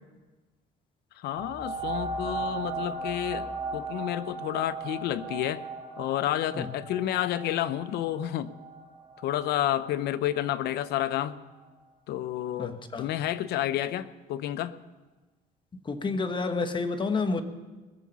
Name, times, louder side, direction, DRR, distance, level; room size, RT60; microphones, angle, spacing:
voice 1, 1.2-5.6 6.0-8.5 9.2-11.4 12.1-14.8, left 12 dB, 75° left, 15 dB, 0.7 m, -30 dB
sound 1, 1.4-10.6 11.3-11.4, right 3 dB, 30° right, 3.6 m, -37 dB
voice 2, 12.6-13.1 15.8-17.4, left 4 dB, 30° left, 8 dB, 1.2 m, -29 dB
20.5 x 7.5 x 6.8 m, 1.2 s
cardioid pair, 110°, 17 cm